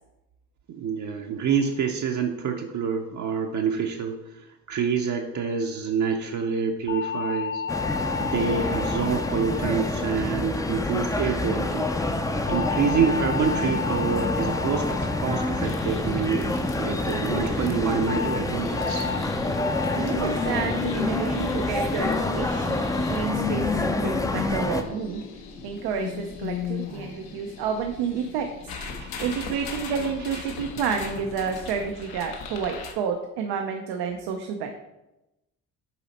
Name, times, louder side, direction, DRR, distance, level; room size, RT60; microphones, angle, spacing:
voice 1, 0.7-7.6 8.2-11.9 12.5-19.1 28.8-30.0 30.3-30.4, right 6 dB, 50° right, 2 dB, 0.7 m, -27 dB
sound 1, 6.9-11.3 12.5-16.9 18.1-18.4 18.8-19.2 19.6-20.0 20.4-20.8 21.2-21.6 22.0-22.4, left 5 dB, 30° left, 0.8 m, -34 dB
sound 2, 7.7-24.8, left 2 dB, 10° left, 0.4 m, -27 dB
sound 3, 15.6-32.9, left 6 dB, 75° left, 1.1 m, -35 dB
voice 2, 20.0-25.2 25.6-28.8 29.2-34.7, right 6 dB, 85° right, 4 dB, 0.7 m, -30 dB
7.2 x 4.1 x 4.2 m, 0.96 s
cardioid pair, 105°, 37 cm